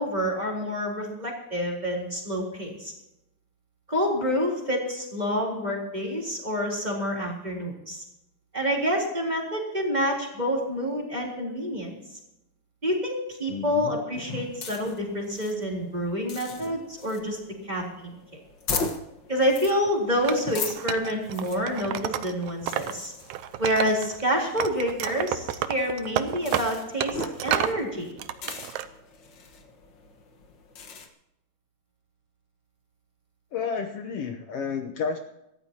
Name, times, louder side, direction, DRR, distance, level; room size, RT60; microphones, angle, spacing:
voice 1, 0.0-2.9 3.9-8.0 8.5-12.0 12.8-17.4 17.6-18.4 19.3-23.1 23.6-28.1, equal, 10° right, -2 dB, 3.3 m, -28 dB
voice 2, 13.5-14.0 16.6-16.7 33.5-35.2, left 6 dB, 90° left, 5 dB, 1.3 m, -31 dB
sound 1, 14.1-31.1, left 4 dB, 45° left, 1.5 m, -39 dB
Wood, 20.2-22.9 23.2-24.3 24.6-27.8 28.2-28.9, right 11 dB, 75° right, 1.8 m, -30 dB
25.5 x 13.5 x 2.9 m, 0.90 s
omnidirectional pair, 4.1 m